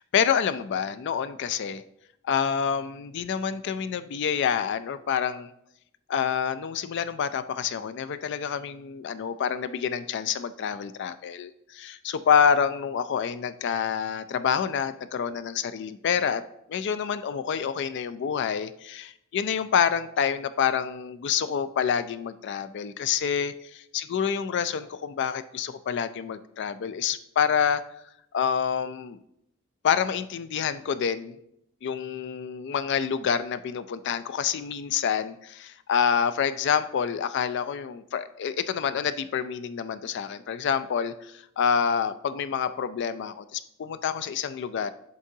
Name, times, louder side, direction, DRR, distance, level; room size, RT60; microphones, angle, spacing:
voice 1, 0.1-1.8 2.2-5.5 6.1-16.4 16.7-27.8 28.3-29.2 29.8-31.4 31.8-44.9, left 7 dB, 50° left, 13 dB, 0.3 m, -27 dB
11.0 x 3.7 x 2.7 m, 0.77 s
head